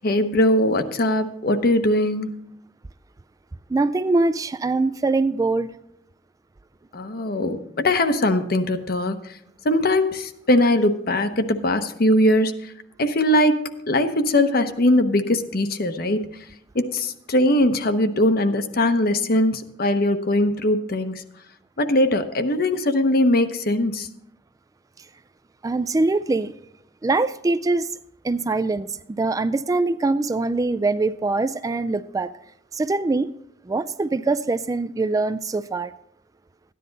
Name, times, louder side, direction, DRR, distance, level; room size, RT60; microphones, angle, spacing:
voice 1, 0.0-2.3 6.9-9.4 9.6-12.7 13.0-16.3 16.7-21.2 21.8-24.1, left 1 dB, 55° left, 0.9 m, -21 dB
voice 2, 3.7-5.7 25.6-26.5 27.0-27.9 28.2-28.9 29.2-32.3 32.7-33.3 33.7-35.9, right 3 dB, 20° right, 0.3 m, -23 dB
13.0 x 10.0 x 4.0 m
head